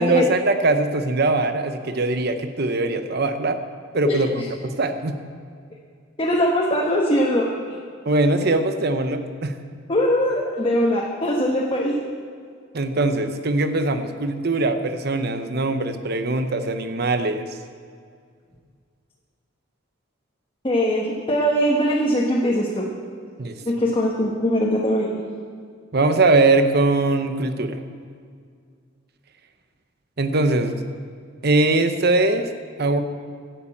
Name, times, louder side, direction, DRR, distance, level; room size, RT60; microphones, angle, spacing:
voice 1, 0.0-3.6 3.9-4.3 4.6-5.2 8.1-9.5 12.7-17.5 23.4-23.5 25.9-27.8 30.2-30.9 31.4-32.5 32.8-33.0, right 2 dB, 50° right, 8 dB, 0.8 m, -21 dB
voice 2, 4.0-4.4 6.2-7.5 9.9-11.9 20.6-22.9 23.6-25.2, equal, 25° left, -3 dB, 1.3 m, -21 dB
12.0 x 7.1 x 8.5 m, 2.1 s
head